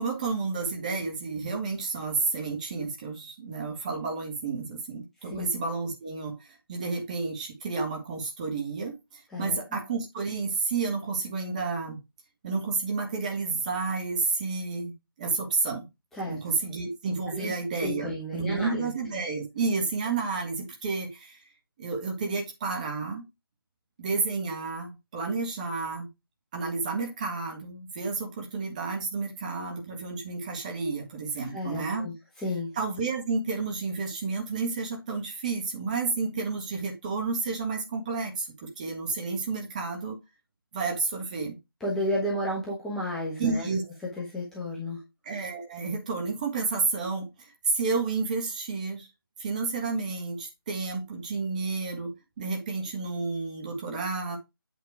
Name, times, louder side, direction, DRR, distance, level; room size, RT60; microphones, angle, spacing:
voice 1, 0.0-8.9 9.4-12.0 12.4-14.9 15.2-15.9 16.3-21.4 21.8-23.2 24.0-26.1 26.5-32.1 32.7-40.2 40.7-41.6 43.4-43.8 45.2-49.1 49.4-54.4, right 4 dB, 20° right, 1.6 m, -31 dB
voice 2, 17.3-18.8 31.5-32.1 32.4-32.7 41.8-43.7 44.2-45.0, left 1 dB, 5° left, 1.2 m, -32 dB
8.3 x 4.2 x 4.6 m
figure-of-eight pair, 155°, 12 cm